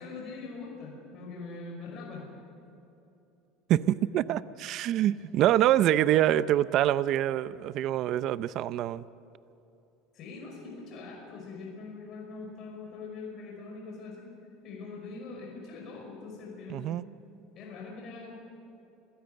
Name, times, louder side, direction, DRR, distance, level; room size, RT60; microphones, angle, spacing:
voice 1, 0.0-2.3 10.1-14.3 14.6-17.0 17.5-18.3, left 4 dB, 45° left, -1 dB, 5.4 m, -42 dB
voice 2, 3.7-9.0 16.7-17.0, right 12 dB, 50° right, 16 dB, 0.6 m, -25 dB
27.0 x 16.0 x 7.9 m, 2.8 s
supercardioid pair, 135°, 0 cm